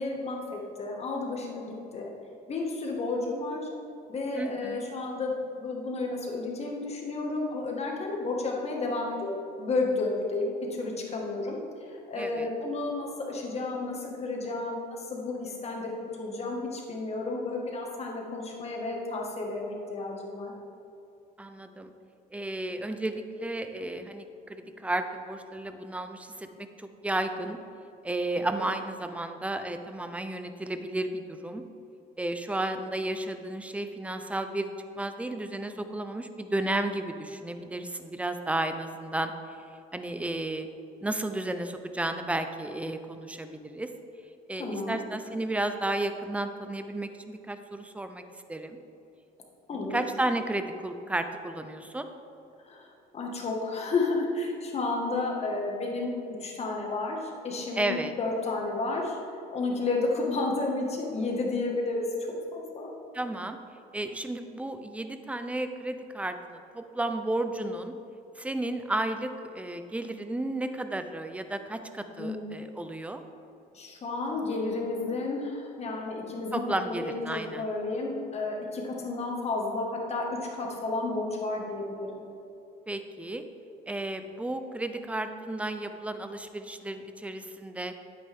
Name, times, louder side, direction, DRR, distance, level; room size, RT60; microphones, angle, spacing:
voice 1, 0.0-2.1 2.5-3.7 4.1-5.3 5.6-10.5 10.8-11.6 12.1-15.9 16.2-20.5 44.6-45.0 49.7-50.0 52.6-52.9 53.1-56.1 56.4-57.2 57.4-59.2 59.5-62.1 62.5-62.9 72.2-72.5 73.7-76.6 76.9-82.2, left 3 dB, 40° left, -1 dB, 1.8 m, -32 dB
voice 2, 4.3-4.9 12.1-12.5 21.4-21.9 22.3-27.6 28.0-31.6 32.2-34.7 35.0-39.6 39.9-40.7 41.0-43.9 44.5-48.2 48.5-48.8 49.7-52.1 57.7-58.1 63.1-63.6 63.9-67.9 68.4-73.2 76.5-77.7 82.9-83.4 83.9-87.9, right 1 dB, 10° right, 8 dB, 0.6 m, -33 dB
9.5 x 8.8 x 3.6 m, 2.7 s
cardioid pair, 110°, 17 cm